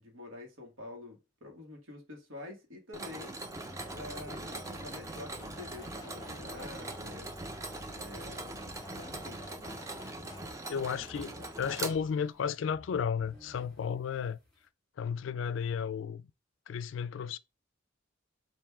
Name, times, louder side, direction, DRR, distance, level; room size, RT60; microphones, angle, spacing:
voice 1, 0.0-3.4 3.9-7.3 7.9-8.7 9.0-9.5 9.8-10.3 11.0-11.5, left 2 dB, 90° right, 1.4 m, -48 dB
Mechanisms, 2.9-12.5, right 2 dB, 15° right, 0.4 m, -42 dB
sound 1, 3.7-10.5, left 1 dB, 20° left, 0.7 m, -50 dB
sound 2, 5.4-14.7, left 4 dB, 5° left, 1.6 m, -57 dB
voice 2, 10.7-14.4 15.0-16.3 16.7-17.4, left 7 dB, 70° left, 0.3 m, -33 dB
3.5 x 2.6 x 4.3 m
head